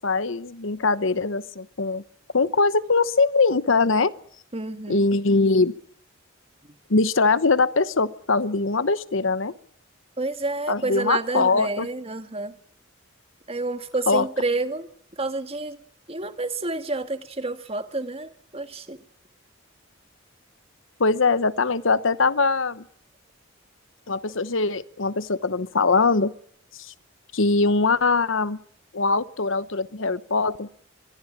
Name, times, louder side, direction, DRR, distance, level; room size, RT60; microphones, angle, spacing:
voice 1, 0.0-2.0 2.3-4.1 4.9-5.7 6.9-9.5 10.7-11.9 14.1-14.2 21.0-22.8 24.1-26.3 26.8-26.9 27.3-28.6 28.9-30.7, left 3 dB, 65° left, 15 dB, 1.0 m, -22 dB
voice 2, 4.5-5.1 10.2-12.6 13.5-15.8 16.1-19.0, right 2 dB, 30° right, 9 dB, 1.9 m, -29 dB
23.5 x 22.5 x 7.4 m, 0.64 s
head